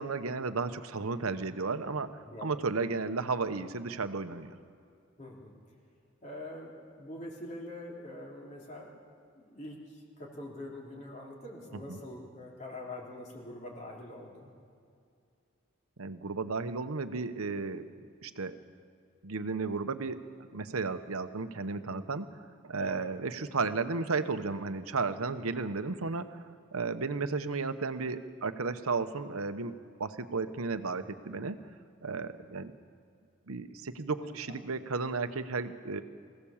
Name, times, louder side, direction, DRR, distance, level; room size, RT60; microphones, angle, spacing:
voice 1, 0.0-4.5 11.7-12.0 16.0-17.9 18.2-18.6 19.2-20.2 20.5-22.3 22.6-26.4 26.7-31.6 32.0-32.7 33.5-36.0, right 4 dB, 90° right, 11 dB, 1.0 m, -34 dB
voice 2, 5.2-5.6 6.2-6.7 7.0-8.9 9.3-14.5 22.8-23.1 34.2-34.4, left 1 dB, 35° left, -2 dB, 3.4 m, -44 dB
24.5 x 16.5 x 7.2 m, 2.4 s
head